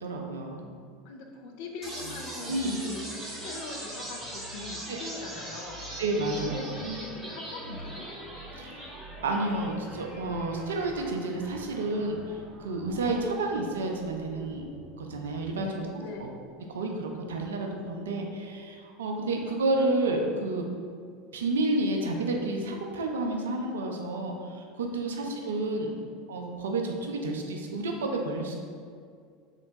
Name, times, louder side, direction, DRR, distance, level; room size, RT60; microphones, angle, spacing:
voice 1, 0.0-0.7 2.5-2.8 4.9-5.0 6.0-6.7 8.5-8.9 9.2-14.6 15.0-15.9 16.2-16.3 16.7-20.6 21.3-25.9 26.3-28.6, right 2 dB, 70° right, 2 dB, 0.3 m, -30 dB
voice 2, 1.0-6.0 6.4-8.1 15.5-16.3 25.0-26.0, left 2 dB, 55° left, 2 dB, 0.4 m, -42 dB
sound 1, 1.8-15.8, right 1 dB, 20° right, 0.8 m, -42 dB
3.2 x 2.9 x 2.6 m, 2.2 s
figure-of-eight pair, 75°, 0 cm